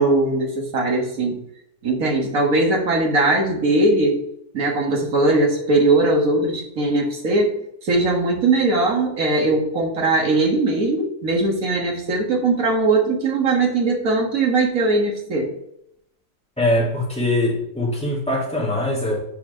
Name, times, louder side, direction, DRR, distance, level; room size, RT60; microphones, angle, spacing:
voice 1, 0.0-1.4 1.8-4.2 4.5-7.5 7.8-15.5, right 2 dB, 50° right, 0 dB, 1.9 m, -20 dB
voice 2, 16.6-19.2, left 1 dB, 5° left, -5 dB, 2.3 m, -22 dB
7.3 x 4.4 x 5.4 m, 0.77 s
omnidirectional pair, 2.0 m